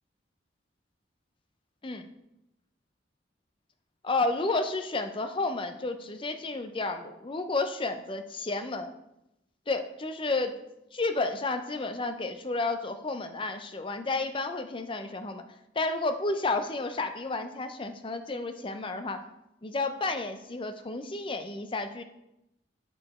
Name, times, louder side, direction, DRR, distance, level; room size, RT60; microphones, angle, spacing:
voice 1, 4.0-8.9 9.7-10.5 10.9-15.4 15.8-19.2 19.6-22.0, left 3 dB, 25° left, 8 dB, 0.5 m, -31 dB
8.6 x 5.0 x 4.2 m, 0.87 s
head